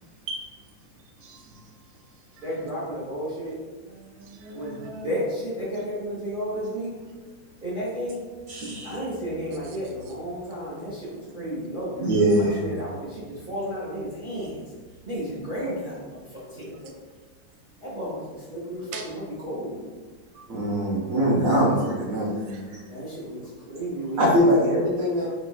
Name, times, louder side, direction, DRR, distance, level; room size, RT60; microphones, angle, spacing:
voice 1, 1.2-1.6 2.3-2.5 3.8-5.1 9.5-9.8 10.4-11.6 12.1-12.2 18.9-19.1 20.3-20.7 22.5-22.6 25.3-25.4, right 3 dB, 85° right, 1 dB, 1.5 m, -42 dB
voice 2, 2.4-3.6 4.5-6.9 7.6-8.3 8.8-12.0 12.3-14.6 15.0-16.9 17.8-18.2 18.5-19.8 22.9-23.4 23.7-24.3, equal, 30° right, -9 dB, 1.0 m, -32 dB
voice 3, 8.5-9.0 12.0-12.8 20.5-22.8 24.2-25.3, equal, 55° right, -5 dB, 1.0 m, -22 dB
4.5 x 3.8 x 2.4 m, 1.4 s
omnidirectional pair, 2.2 m